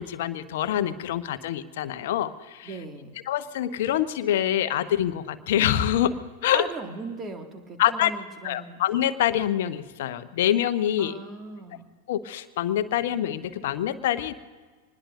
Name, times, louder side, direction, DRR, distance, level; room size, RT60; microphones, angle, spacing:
voice 1, 0.0-2.7 3.3-6.2 6.4-6.6 7.8-8.1 8.4-11.1 12.1-14.3, left 11 dB, 55° left, 12 dB, 0.9 m, -25 dB
voice 2, 2.6-3.1 6.5-8.8 11.0-11.9, right 3 dB, 25° right, 4 dB, 2.2 m, -38 dB
25.5 x 20.0 x 2.7 m, 1.4 s
figure-of-eight pair, 90°, 0 cm